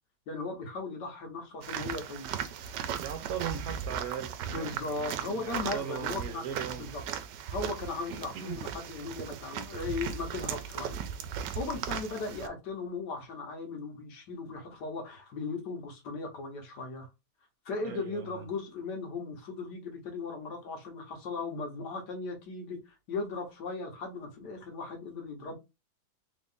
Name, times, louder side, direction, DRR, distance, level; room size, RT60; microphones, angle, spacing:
voice 1, 0.3-2.5 4.4-6.4 6.8-7.0 7.5-11.0 11.5-17.1 17.6-22.8 23.1-25.5, left 3 dB, 80° left, 1.6 m, -37 dB
sound 1, 1.6-12.5, right 8 dB, 85° right, 1.2 m, -37 dB
voice 2, 3.0-6.9 8.1-8.6 11.8-11.9 17.8-18.5, right 8 dB, 65° right, 1.1 m, -39 dB
3.6 x 2.5 x 3.5 m
omnidirectional pair, 1.8 m